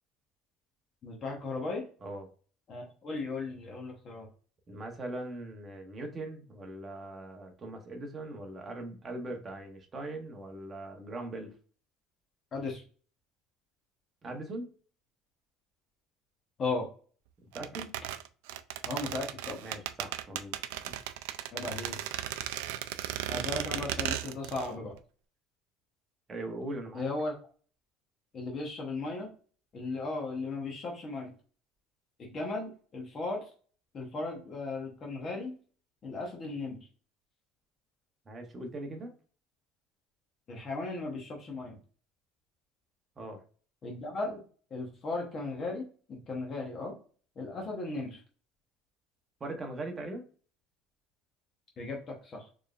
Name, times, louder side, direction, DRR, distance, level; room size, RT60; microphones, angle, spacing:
voice 1, 1.0-1.8 2.7-4.3 12.5-12.8 16.6-16.9 18.9-19.6 21.5-22.0 23.3-24.9 26.9-27.3 28.3-29.3 29.7-31.3 32.2-33.4 33.9-35.6 36.0-36.9 40.5-41.8 43.8-44.4 44.7-46.9 47.4-48.2 51.8-52.5, left 3 dB, 30° left, 0 dB, 0.9 m, -36 dB
voice 2, 4.7-11.5 14.2-14.7 17.5-17.9 19.6-20.6 20.9-21.0 26.3-27.1 38.3-39.1 43.2-43.4 49.4-50.2, right 2 dB, 20° right, 3 dB, 0.8 m, -40 dB
sound 1, 17.5-24.7 25.0-25.1, right 13 dB, 90° right, 0.3 m, -36 dB
4.4 x 3.2 x 2.4 m, 0.40 s
cardioid pair, 160°, 0 cm